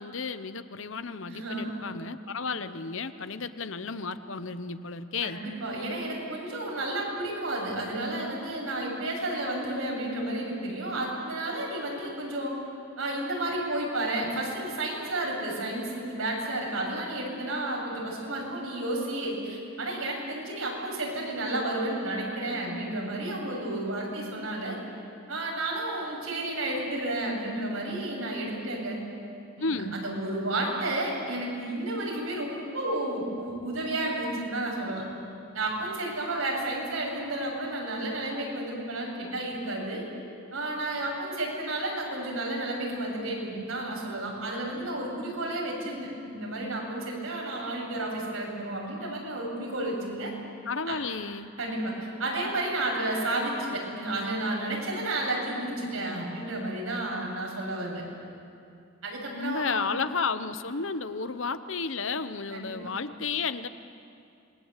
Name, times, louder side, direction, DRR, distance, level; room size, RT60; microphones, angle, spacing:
voice 1, 0.0-5.4 29.6-30.0 50.7-51.5 59.3-63.7, left 4 dB, 65° left, 12 dB, 1.0 m, -32 dB
voice 2, 1.3-1.8 5.2-12.5 13.0-24.8 25.3-29.0 29.6-35.0 35.5-40.0 40.5-50.3 50.9-51.0 51.6-58.0 59.0-59.9 62.5-62.8, right 1 dB, 90° right, -2 dB, 7.5 m, -32 dB
27.0 x 21.5 x 8.3 m, 2.4 s
head